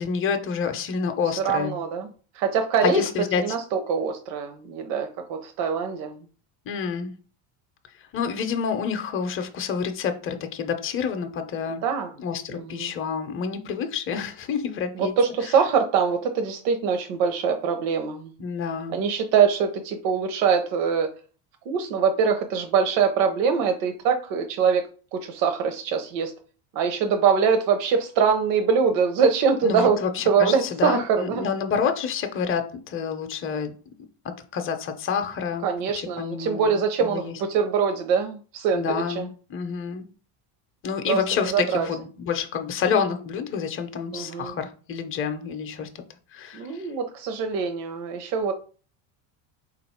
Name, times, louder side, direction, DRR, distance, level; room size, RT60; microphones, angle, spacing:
voice 1, 0.0-1.7 2.8-3.6 6.7-7.1 8.1-11.8 12.2-15.1 18.4-19.0 29.6-33.7 34.2-35.7 36.0-37.3 38.7-40.1 40.8-45.9 46.3-46.8, left 6 dB, 30° left, 7 dB, 0.6 m, -28 dB
voice 2, 1.4-2.1 2.3-3.0 3.3-6.1 11.8-12.1 12.5-12.9 15.0-18.3 18.9-21.1 21.7-24.8 25.1-26.3 26.7-30.0 30.3-31.5 35.6-39.3 41.1-41.9 44.1-44.6 46.5-48.5, right 6 dB, 70° right, 5 dB, 0.8 m, -23 dB
3.8 x 2.5 x 4.2 m, 0.38 s
supercardioid pair, 115°, 46 cm